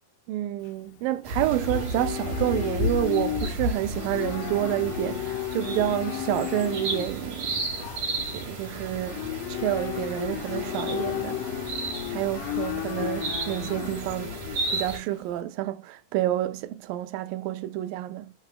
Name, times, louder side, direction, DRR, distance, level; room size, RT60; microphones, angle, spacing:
voice 1, 0.3-7.7 8.3-11.4 12.1-14.4 14.7-18.3, right 14 dB, 80° right, 2.3 m, -29 dB
Livestock farm animals working animals, 0.6-15.4, left 14 dB, 80° left, 2.2 m, -34 dB
sound 1, 1.2-15.0, right 1 dB, 60° right, 3.6 m, -33 dB
9.6 x 4.5 x 2.2 m
omnidirectional pair, 4.1 m